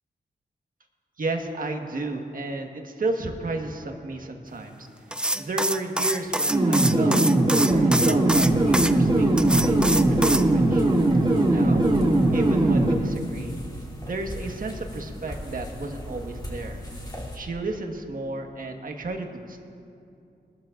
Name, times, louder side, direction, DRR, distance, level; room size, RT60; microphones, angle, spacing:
voice 1, 1.2-10.8 11.2-11.9 12.3-13.6 14.0-16.9 17.3-19.6, right 2 dB, 55° right, 3 dB, 1.6 m, -33 dB
sound 1, 5.1-8.9 9.4-10.5, right 1 dB, 5° right, 0.5 m, -25 dB
sound 2, 6.5-12.9, right 2 dB, 25° right, 2.0 m, -20 dB
sound 3, 8.3-17.4, equal, 20° left, 3.1 m, -37 dB
22.5 x 12.5 x 2.6 m, 2.6 s
cardioid pair, 65°, 17 cm